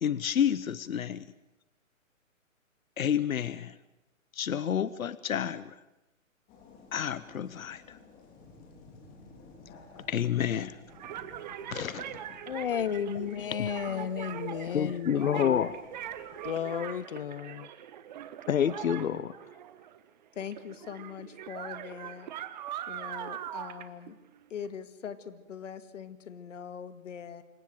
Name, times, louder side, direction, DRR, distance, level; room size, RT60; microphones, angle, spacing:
voice 1, 0.0-1.2 3.0-3.7 4.3-5.7 6.9-8.0 10.1-10.8 11.7-12.0 13.6-13.7 14.7-15.7 18.5-19.3, left 9 dB, 85° left, 1.0 m, -29 dB
sound 1, 6.5-16.6, left 3 dB, 20° left, 3.4 m, -55 dB
sound 2, 10.9-20.1 20.4-24.7, right 10 dB, 35° right, 1.2 m, -42 dB
voice 2, 12.5-15.6 16.4-17.7, left 9 dB, 40° left, 0.7 m, -33 dB
voice 3, 20.3-22.3 22.9-24.2 24.5-27.4, left 7 dB, 60° left, 2.0 m, -42 dB
27.0 x 16.0 x 7.8 m
hypercardioid pair, 155°, 41 cm